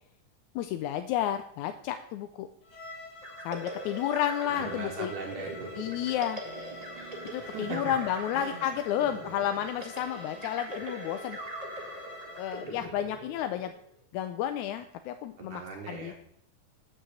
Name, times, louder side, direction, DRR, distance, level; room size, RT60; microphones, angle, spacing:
voice 1, 0.6-2.5 3.4-5.1 5.8-6.4 7.3-11.4 12.3-13.7 14.1-15.6 15.9-16.1, left 10 dB, 80° left, 8 dB, 1.8 m, -31 dB
Bowed string instrument, 2.6-12.7, left 2 dB, 50° left, 2.0 m, -47 dB
sound 1, 3.2-13.8, right 1 dB, 30° right, 0.7 m, -42 dB
voice 2, 4.5-5.7 7.4-7.9 8.3-8.7 15.4-16.1, right 4 dB, 75° right, 1 dB, 2.6 m, -39 dB
sound 2, 6.4-10.6, right 8 dB, 90° right, 1.0 m, -55 dB
7.4 x 6.6 x 7.7 m, 0.68 s
omnidirectional pair, 3.8 m